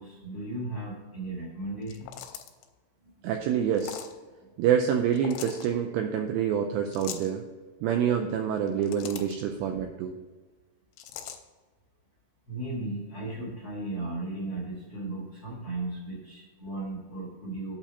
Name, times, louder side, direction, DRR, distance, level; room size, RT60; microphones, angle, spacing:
voice 1, 0.0-2.2 12.5-17.7, right 2 dB, 50° left, -5 dB, 1.6 m, -36 dB
sound 1, 1.8-2.7 3.7-4.1 5.1-5.7 6.9-7.3 8.6-9.4 11.0-11.4, left 10 dB, 90° left, 3.1 m, -41 dB
voice 2, 3.2-4.0 4.6-7.4 7.8-10.1, right 8 dB, 90° right, 4 dB, 2.4 m, -27 dB
8.2 x 4.3 x 6.9 m, 1.3 s
omnidirectional pair, 5.5 m